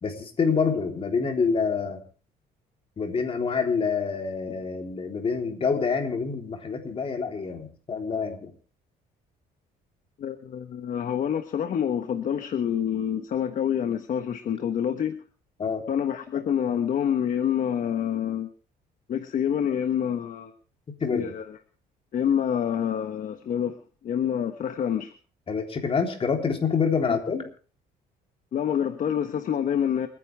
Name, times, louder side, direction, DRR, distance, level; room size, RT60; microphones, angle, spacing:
voice 1, 0.0-2.0 3.0-8.5 15.6-15.8 21.0-21.3 25.5-27.4, left 5 dB, 35° left, 3 dB, 3.6 m, -27 dB
voice 2, 10.2-15.2 15.9-18.5 19.1-20.5 21.1-21.6 22.1-23.8 24.0-25.1 27.1-27.2 28.5-30.1, left 9 dB, 50° left, 7 dB, 1.3 m, -27 dB
29.0 x 10.0 x 3.5 m, 0.40 s
cardioid pair, 110°, 17 cm